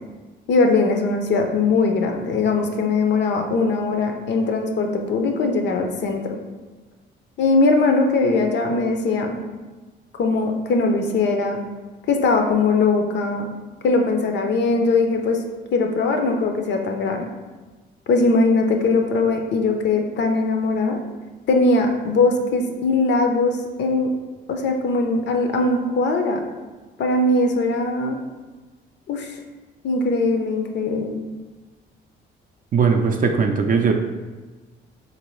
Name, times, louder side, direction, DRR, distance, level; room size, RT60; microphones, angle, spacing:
voice 1, 0.5-6.4 7.4-9.4 10.1-11.6 12.1-13.5 13.8-15.4 15.7-17.3 18.1-21.0 21.5-24.1 24.5-26.4 27.0-28.2 29.1-29.4 29.8-31.1, left 3 dB, 65° left, 4 dB, 0.5 m, -20 dB
voice 2, 32.7-33.9, right 5 dB, 45° right, 3 dB, 0.4 m, -19 dB
3.7 x 2.6 x 3.1 m, 1.3 s
cardioid pair, 90°, 20 cm